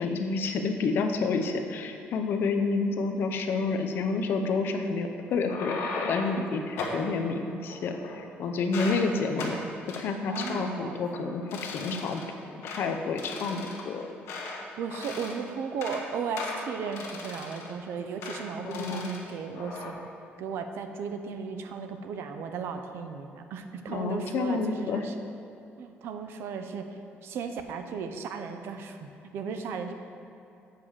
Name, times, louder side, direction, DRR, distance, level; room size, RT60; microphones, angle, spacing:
voice 1, 0.0-9.5 10.0-12.2 12.6-14.1 18.6-19.1 23.9-25.1, left 4 dB, 55° left, 6 dB, 0.6 m, -29 dB
sound 1, 5.3-6.4 6.8-7.0 7.7-8.3 8.6-9.0 9.4-9.6 9.9-10.0 10.3-10.6 11.0-11.2 11.5-12.3 12.6-12.8 13.2-14.6 14.9-15.4 15.7-16.0 16.4-17.8 18.2-18.4 18.7-19.2 19.5-19.9, left 3 dB, 80° left, 1.3 m, -37 dB
voice 2, 10.3-11.0 14.8-20.0 20.4-25.1 25.8-27.0 27.2-29.9, right 6 dB, 65° right, 7 dB, 0.6 m, -35 dB
7.5 x 4.8 x 7.2 m, 2.8 s
cardioid pair, 175°, 4 cm